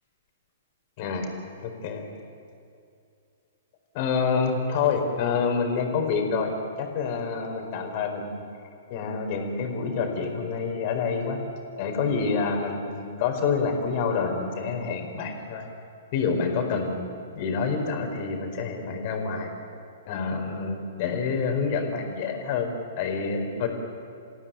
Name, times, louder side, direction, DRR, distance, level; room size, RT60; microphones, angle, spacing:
voice 1, 1.6-2.0 3.9-6.5 6.8-8.4 8.9-11.4 11.8-15.7 16.1-17.0 17.4-19.5 20.1-22.7 23.0-23.7, left 5 dB, 40° left, 4 dB, 4.7 m, -27 dB
28.0 x 16.5 x 9.2 m, 2.5 s
figure-of-eight pair, 115°, 0 cm